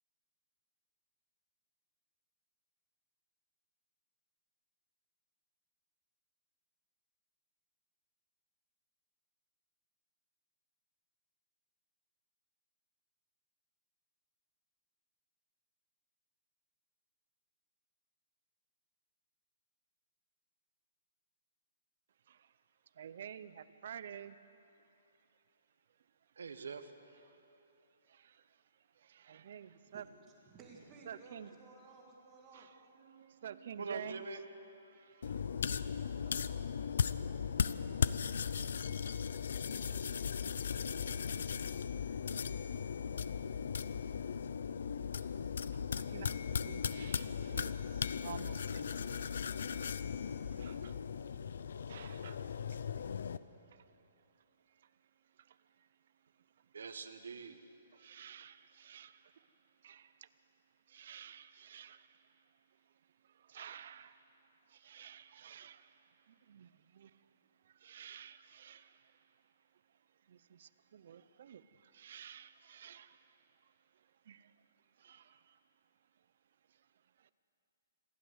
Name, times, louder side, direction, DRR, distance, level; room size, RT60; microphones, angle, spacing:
voice 1, 22.9-24.4 27.3-27.4 28.1-28.6 28.9-30.1 31.1-31.5 32.5-34.2 34.9-35.4 45.7-49.3 50.5-51.0 51.9-52.5 53.7-53.9 54.7-54.9 55.4-55.9 57.9-59.5 59.8-60.3 60.9-62.4 63.2-67.1 67.6-69.3 70.3-74.5 75.0-75.6 76.7-76.8 77.2-77.3, right 8 dB, 45° right, 14 dB, 0.6 m, -52 dB
voice 2, 26.4-27.2 33.8-34.4 56.7-57.6, right 4 dB, 85° right, 9 dB, 1.5 m, -44 dB
voice 3, 30.4-32.7 35.3-36.7, right 3 dB, 15° right, -1 dB, 1.8 m, -58 dB
sound 1, 35.2-53.4, left 7 dB, 60° left, 0.6 m, -37 dB
26.5 x 12.5 x 8.1 m, 2.9 s
hypercardioid pair, 180°, 0 cm